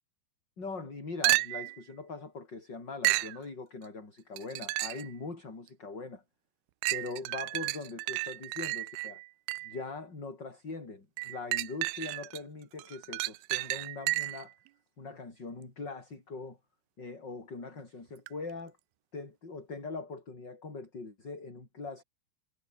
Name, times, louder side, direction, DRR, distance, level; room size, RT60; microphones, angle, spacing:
voice 1, 0.6-6.2 6.9-9.2 9.6-14.6 15.0-16.6 17.0-18.8 19.1-22.0, left 3 dB, 25° left, 5.6 m, -42 dB
sound 1, 1.2-1.8 3.0-3.4 4.4-5.1 5.7-5.8 6.8-9.8 11.2-12.4 12.8-14.5 18.3-18.4, right 21 dB, 85° right, 2.5 m, -32 dB
omnidirectional pair, 4.5 m